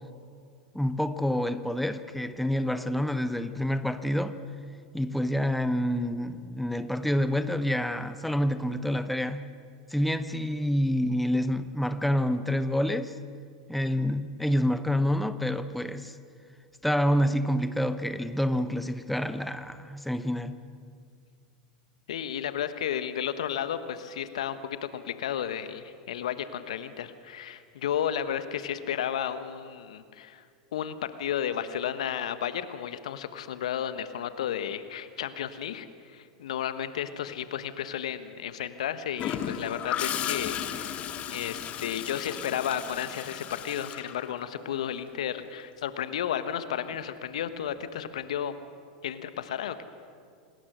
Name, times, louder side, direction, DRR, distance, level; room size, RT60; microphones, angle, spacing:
voice 1, 0.7-4.4 4.9-9.5 9.9-13.1 13.7-16.2 16.8-20.6, equal, ahead, 11 dB, 1.0 m, -27 dB
voice 2, 22.1-30.4 30.7-48.6 49.0-49.8, left 9 dB, 70° left, 12 dB, 1.3 m, -33 dB
Gurgling / Toilet flush, 39.2-44.9 46.9-47.2, left 9 dB, 35° left, 1.5 m, -35 dB
27.5 x 20.0 x 6.3 m, 2.2 s
hypercardioid pair, 90°, 4 cm